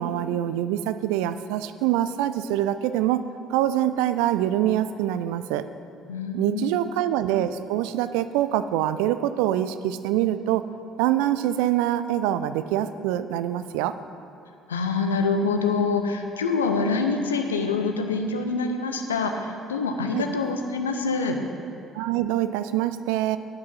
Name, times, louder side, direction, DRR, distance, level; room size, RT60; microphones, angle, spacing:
voice 1, 0.0-3.2 3.5-5.6 6.3-10.7 11.0-14.0 20.1-20.2 21.9-23.4, right 12 dB, 65° right, 12 dB, 0.4 m, -25 dB
voice 2, 6.1-6.8 14.7-21.4, left 4 dB, 80° left, 5 dB, 0.7 m, -25 dB
8.8 x 8.4 x 5.7 m, 2.6 s
figure-of-eight pair, 50°, 0 cm